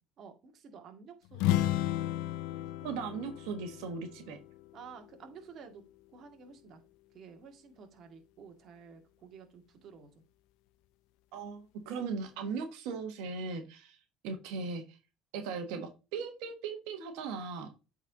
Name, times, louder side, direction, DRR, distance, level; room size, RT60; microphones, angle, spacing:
voice 1, 0.2-1.7 4.7-5.9 6.1-6.8 7.1-10.2, right 6 dB, 50° right, 5 dB, 1.9 m, -52 dB
sound 1, 1.3-5.1, left 13 dB, 80° left, 0.5 m, -33 dB
voice 2, 2.8-4.4 11.3-14.0 14.2-15.0 15.3-17.7, right 5 dB, 80° right, 6 dB, 1.3 m, -38 dB
8.1 x 4.2 x 3.9 m, 0.29 s
supercardioid pair, 100°, 0 cm